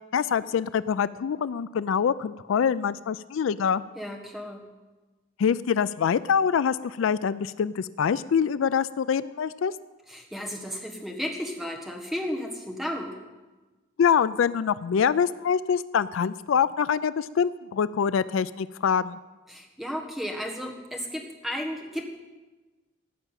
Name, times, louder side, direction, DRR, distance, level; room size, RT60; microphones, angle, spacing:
voice 1, 0.1-3.8 5.4-9.7 14.0-19.2, left 7 dB, 75° left, 16 dB, 0.4 m, -25 dB
voice 2, 3.9-4.7 10.1-13.2 19.5-22.0, equal, ahead, 1 dB, 1.5 m, -34 dB
15.5 x 5.9 x 9.1 m, 1.2 s
head